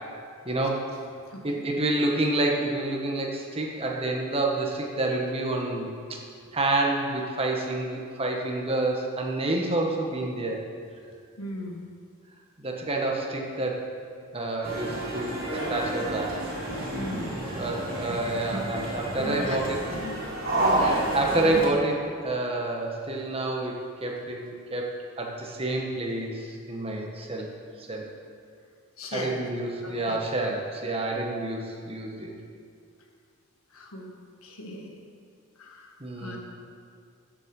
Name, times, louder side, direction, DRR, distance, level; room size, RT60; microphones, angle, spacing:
voice 1, 0.4-0.8 1.4-6.2 6.5-10.6 12.6-13.8 14.3-15.4 15.7-16.4 17.6-19.8 20.8-27.5 27.8-28.1 29.1-32.3 36.0-36.4, right 2 dB, 25° right, 0 dB, 1.5 m, -28 dB
voice 2, 1.3-1.6 11.4-11.9 16.9-17.4 19.2-20.2 20.5-21.0 29.0-29.4 29.8-30.2 33.7-34.1 34.4-35.0 35.5-36.4, left 1 dB, 85° left, 1 dB, 1.7 m, -37 dB
sound 1, 14.6-21.7, right 1 dB, 45° right, 3.0 m, -30 dB
14.0 x 7.7 x 5.5 m, 2.2 s
head